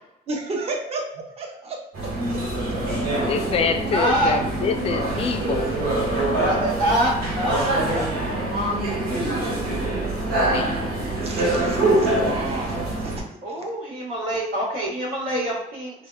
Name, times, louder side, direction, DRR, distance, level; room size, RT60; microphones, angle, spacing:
voice 1, 0.3-1.8 11.2-13.2 13.6-13.7, right 3 dB, 35° right, 1 dB, 0.7 m, -32 dB
sound 1, 1.9-13.2, right 2 dB, 60° right, 1.3 m, -24 dB
voice 2, 3.3-5.7 10.5-10.7, left 6 dB, 35° left, 7 dB, 0.4 m, -25 dB
voice 3, 3.9-4.3 6.4-8.1 8.4-9.0 13.4-15.9, equal, 80° right, -8 dB, 1.2 m, -25 dB
3.5 x 2.1 x 2.2 m, 0.78 s
cardioid pair, 110°, 17 cm